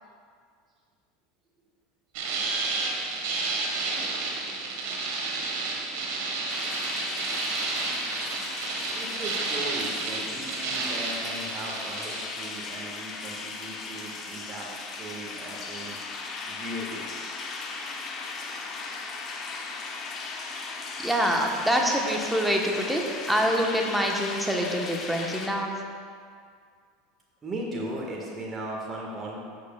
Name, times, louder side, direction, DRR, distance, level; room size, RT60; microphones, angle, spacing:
sound 1, 2.1-12.2, right 3 dB, 60° right, 1.6 m, -31 dB
sound 2, 6.5-25.5, left 4 dB, 35° left, 1.0 m, -37 dB
voice 1, 8.9-16.0 16.5-17.1 27.4-29.4, right 1 dB, 25° right, -3 dB, 1.8 m, -37 dB
voice 2, 21.0-25.7, equal, 5° right, 0 dB, 1.3 m, -25 dB
13.0 x 7.7 x 2.5 m, 2.1 s
figure-of-eight pair, 80°, 0 cm